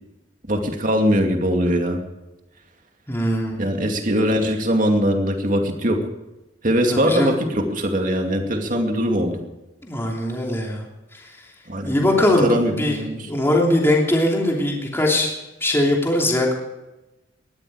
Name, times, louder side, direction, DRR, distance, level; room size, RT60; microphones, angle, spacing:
voice 1, 0.5-2.0 3.6-6.0 6.6-9.4 11.7-12.0 12.4-13.3, equal, 45° right, 4 dB, 2.5 m, -21 dB
voice 2, 3.1-3.6 6.9-7.3 9.8-10.8 11.1-11.3 11.9-15.3 15.6-16.5, left 1 dB, 15° left, -1 dB, 3.0 m, -21 dB
19.5 x 13.5 x 4.9 m, 1.0 s
head